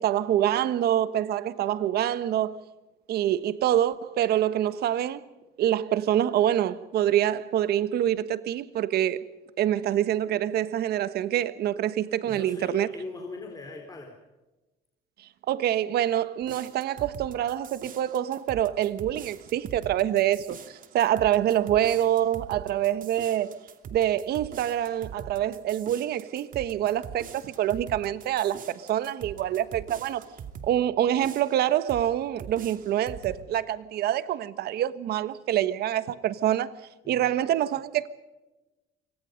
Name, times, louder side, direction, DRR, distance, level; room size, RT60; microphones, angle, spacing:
voice 1, 0.0-2.6 3.1-5.2 5.6-9.2 9.6-12.9 15.2-23.6 23.9-30.3 30.6-36.7 37.1-38.1, right 11 dB, 70° right, 1.4 m, -26 dB
voice 2, 12.3-14.2 37.0-37.3, left 3 dB, 20° left, 4.3 m, -40 dB
sound 1, 16.4-30.7 31.2-32.1 32.4-33.4, right 7 dB, 55° right, 2.7 m, -43 dB
27.5 x 25.0 x 5.3 m
cardioid pair, 110°, 17 cm